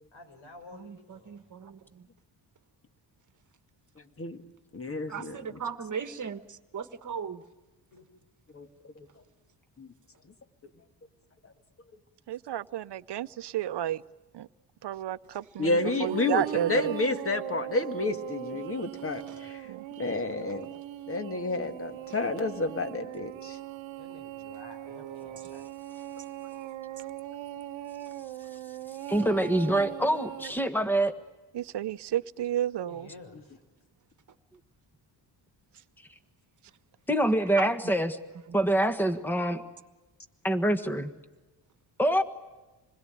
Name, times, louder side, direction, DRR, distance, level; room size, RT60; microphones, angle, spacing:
voice 1, 0.1-1.4 7.9-8.1 19.2-19.5 24.0-25.7 32.9-33.6, left 2 dB, 85° left, 5.9 m, -51 dB
voice 2, 0.7-2.0 5.1-7.4 19.3-19.4 37.5-37.7 38.5-38.6, right 6 dB, 40° right, 1.6 m, -38 dB
voice 3, 4.7-5.4 8.5-9.1 9.8-9.9 11.4-11.5 15.6-19.7 20.0-20.7 21.1-23.6, left 3 dB, 30° left, 2.1 m, -30 dB
voice 4, 12.3-14.0 14.3-14.5 14.8-16.9 19.6-19.9 31.5-33.1, right 12 dB, 65° right, 0.8 m, -32 dB
sound 1, 15.8-30.5, right 14 dB, 85° right, 1.1 m, -40 dB
voice 5, 29.1-31.1 37.1-38.2 38.5-39.6 40.4-41.1 42.0-42.2, right 1 dB, 5° left, 1.5 m, -25 dB
27.5 x 21.0 x 9.1 m
cardioid pair, 120°, 45 cm